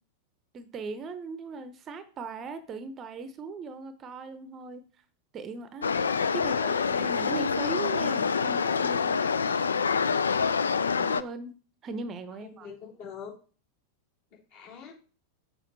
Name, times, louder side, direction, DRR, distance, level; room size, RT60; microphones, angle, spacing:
voice 1, 0.5-4.8 5.3-6.0 6.3-9.3 11.0-11.6 11.8-12.7, right 4 dB, 30° right, 12 dB, 0.7 m, -38 dB
sound 1, 5.8-11.2, left 5 dB, 70° left, 0.4 m, -26 dB
voice 2, 12.4-13.3 14.5-14.9, left 7 dB, 50° left, -4 dB, 3.4 m, -45 dB
6.6 x 5.7 x 4.0 m, 0.39 s
figure-of-eight pair, 90°, 0 cm